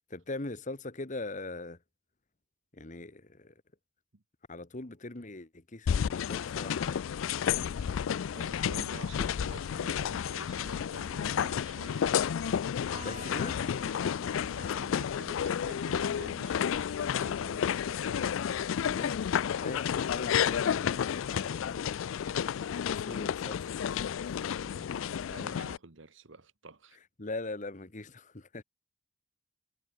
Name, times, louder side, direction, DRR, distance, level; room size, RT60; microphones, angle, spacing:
voice 1, 0.0-1.8 2.7-3.6 4.5-7.1 13.0-13.6 15.6-15.7 18.9-22.0 22.8-23.7 24.2-24.8 27.2-28.6, left 2 dB, 40° left, 1.3 m, -42 dB
sound 1, 5.9-25.8, left 8 dB, 75° left, 0.4 m, -31 dB
voice 2, 8.2-12.3 14.5-18.4 24.6-27.0, right 3 dB, 65° right, 1.4 m, -49 dB
Electric guitar, 12.9-16.5, right 3 dB, 30° right, 2.9 m, -51 dB
head